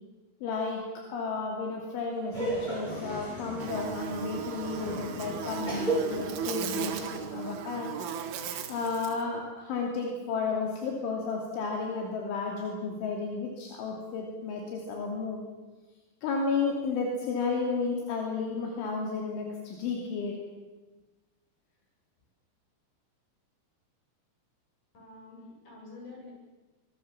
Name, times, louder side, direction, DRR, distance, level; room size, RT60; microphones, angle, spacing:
voice 1, 0.4-7.9 8.7-15.4 16.2-20.4, left 4 dB, 75° left, 1 dB, 5.1 m, -32 dB
Laughter, 2.3-7.4, right 1 dB, 10° left, 7.9 m, -35 dB
Buzz, 3.6-9.2, right 8 dB, 80° right, 4.1 m, -36 dB
voice 2, 24.9-26.3, left 3 dB, 40° left, -2 dB, 9.4 m, -47 dB
24.5 x 21.5 x 7.3 m, 1.2 s
omnidirectional pair, 5.6 m